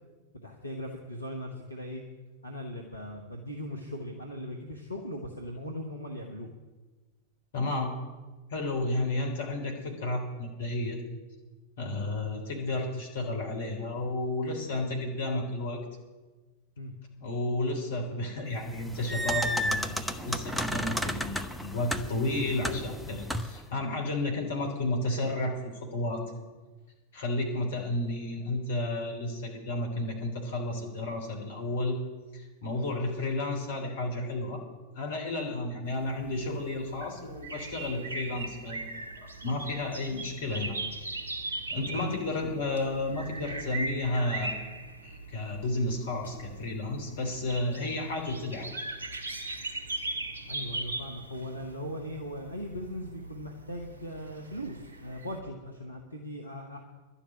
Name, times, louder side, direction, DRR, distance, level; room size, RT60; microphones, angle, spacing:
voice 1, 0.4-2.0 2.4-6.5 11.8-12.0 16.8-16.9 32.7-32.9 42.0-42.1 50.5-56.8, equal, 85° left, 1 dB, 1.2 m, -39 dB
voice 2, 7.5-7.9 8.5-11.0 11.8-15.8 17.2-26.2 27.1-32.0 32.3-34.6 34.9-40.8 41.7-44.5 45.0-48.8, left 2 dB, 60° left, 1 dB, 3.3 m, -32 dB
sound 1, 18.7-23.6, equal, ahead, 0.7 m, -33 dB
sound 2, 35.9-55.4, right 2 dB, 70° right, 1.2 m, -40 dB
11.5 x 7.2 x 9.7 m, 1.2 s
figure-of-eight pair, 90°, 0 cm